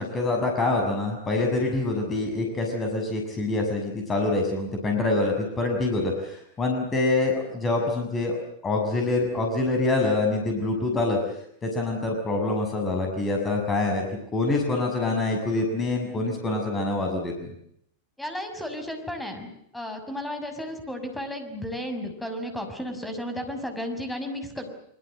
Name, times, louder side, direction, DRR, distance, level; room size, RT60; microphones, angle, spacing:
voice 1, 0.0-8.4 8.6-11.2 11.6-14.0 14.3-17.5, left 2 dB, 20° left, 2 dB, 6.7 m, -25 dB
voice 2, 18.2-24.7, equal, 5° left, 7 dB, 6.3 m, -33 dB
25.0 x 25.0 x 7.8 m, 0.73 s
figure-of-eight pair, 90°, 0 cm